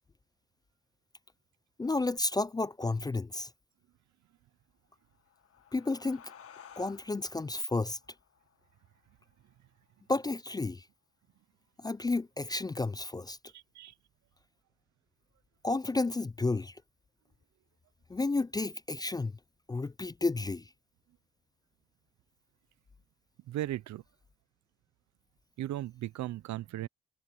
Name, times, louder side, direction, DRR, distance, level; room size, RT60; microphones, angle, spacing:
voice 1, 1.8-3.5 5.7-6.2 6.8-8.0 10.1-10.9 11.8-13.4 15.6-16.8 18.1-19.3 19.7-20.7, left 3 dB, 15° left, 0.3 m, -31 dB
sound 1, 5.0-10.2, left 8 dB, 50° left, 1.7 m, -56 dB
voice 2, 13.5-13.9 23.5-24.0 25.6-26.9, right 14 dB, 70° right, 0.6 m, -37 dB
cardioid pair, 90°, 30 cm